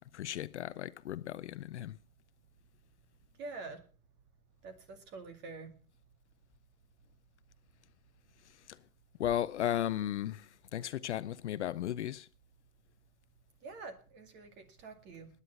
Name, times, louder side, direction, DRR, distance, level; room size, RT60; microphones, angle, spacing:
voice 1, 0.1-2.0 8.7-8.8 9.2-12.3, left 11 dB, 50° left, 0.6 m, -35 dB
voice 2, 3.4-3.8 4.6-5.7 13.6-15.3, right 3 dB, 25° right, 2.1 m, -46 dB
18.5 x 9.9 x 5.7 m
hypercardioid pair, 145°, 43 cm